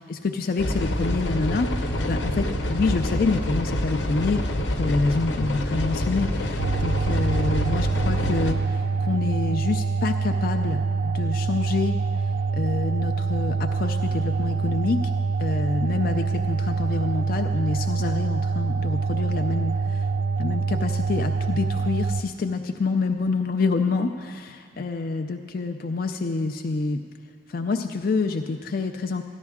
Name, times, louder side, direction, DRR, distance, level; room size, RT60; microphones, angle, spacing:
voice 1, 0.1-4.4 4.7-12.0 12.5-15.0 15.4-20.1 20.4-27.0 27.5-29.2, left 3 dB, 50° left, 5 dB, 0.4 m, -27 dB
sound 1, 0.6-8.5, left 1 dB, 75° left, 0.8 m, -26 dB
sound 2, 6.6-22.2, right 4 dB, 85° right, 0.3 m, -25 dB
14.0 x 10.5 x 3.6 m, 2.1 s
head